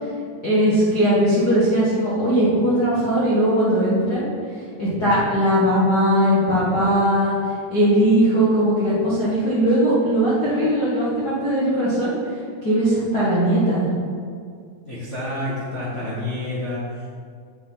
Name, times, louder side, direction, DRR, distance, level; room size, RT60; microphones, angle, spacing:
voice 1, 0.4-4.3 4.8-7.4 7.7-12.1 12.6-13.9, equal, 40° left, -10 dB, 1.4 m, -19 dB
voice 2, 14.8-17.1, left 1 dB, 75° left, -10 dB, 0.6 m, -29 dB
9.7 x 7.0 x 4.1 m, 2.2 s
omnidirectional pair, 4.3 m